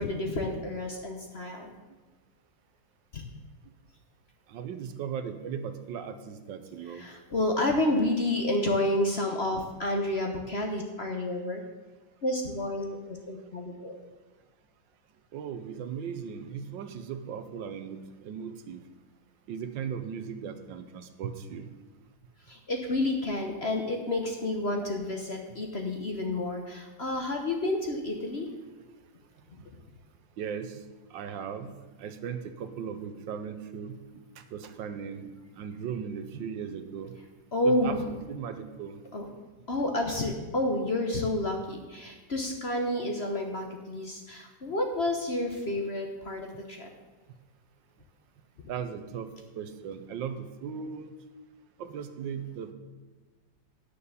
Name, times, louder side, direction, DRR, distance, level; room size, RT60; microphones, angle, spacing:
voice 1, 0.0-1.7 3.1-3.2 7.0-11.6 12.2-12.8 13.3-14.0 22.5-28.5 37.5-38.0 39.1-39.2 39.7-46.9, left 1 dB, 40° left, 3 dB, 1.0 m, -30 dB
voice 2, 4.5-7.1 15.3-18.8 19.5-21.7 29.6-29.7 30.4-34.0 34.4-37.2 37.6-39.0 48.6-49.3 49.6-51.1 51.8-52.7, right 7 dB, 75° right, 9 dB, 1.5 m, -38 dB
9.6 x 6.9 x 6.8 m, 1.3 s
omnidirectional pair, 2.1 m